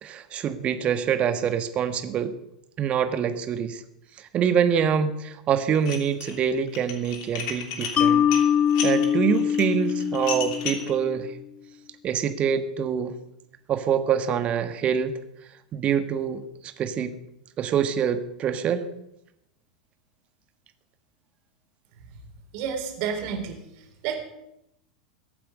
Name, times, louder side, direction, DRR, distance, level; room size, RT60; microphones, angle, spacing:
voice 1, 0.0-2.3 2.8-3.8 4.2-8.3 8.8-11.3 12.0-13.1 13.7-15.1 15.7-17.1 17.6-18.9, right 8 dB, 35° right, 9 dB, 1.5 m, -25 dB
Dishes pots and pans, 5.7-6.4 6.7-10.9, left 6 dB, 55° left, 2.9 m, -34 dB
Mallet percussion, 8.0-11.2, left 8 dB, 30° left, 0.7 m, -23 dB
voice 2, 22.5-23.6 24.0-24.2, right 7 dB, 50° right, 3 dB, 4.0 m, -29 dB
22.5 x 8.6 x 5.4 m, 0.82 s
figure-of-eight pair, 90°, 4 cm